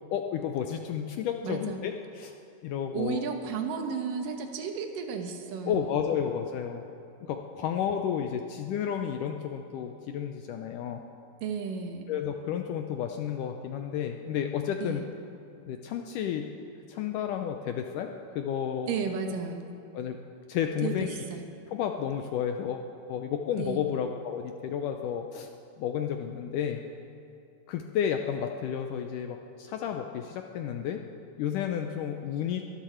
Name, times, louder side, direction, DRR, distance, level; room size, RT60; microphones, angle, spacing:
voice 1, 0.1-2.3 2.6-3.2 5.7-6.8 7.2-11.0 12.1-15.0 15.7-16.6 16.9-18.9 19.9-20.2 20.5-21.2 21.7-25.5 25.8-26.8 27.7-31.1 31.4-32.7, left 8 dB, 80° left, 5 dB, 1.9 m, -32 dB
voice 2, 1.4-1.8 2.9-6.2 11.4-12.1 14.8-15.1 18.9-19.7 20.8-21.5 23.6-23.8, right 6 dB, 70° right, 5 dB, 2.6 m, -33 dB
22.5 x 13.0 x 4.5 m, 2.7 s
omnidirectional pair, 4.3 m